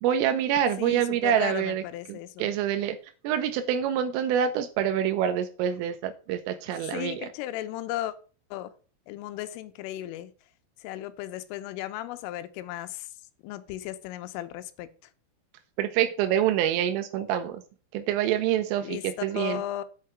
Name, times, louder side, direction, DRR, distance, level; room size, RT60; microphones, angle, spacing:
voice 1, 0.0-1.8 2.1-3.0 3.3-7.3 15.8-17.6 17.9-19.6, right 10 dB, 85° right, 8 dB, 3.3 m, -26 dB
voice 2, 0.8-2.5 6.7-8.2 8.5-8.7 9.1-10.3 10.8-13.1 13.4-15.1 18.8-19.8, left 14 dB, 85° left, 10 dB, 3.3 m, -36 dB
7.7 x 5.6 x 7.8 m, 0.37 s
omnidirectional pair, 5.8 m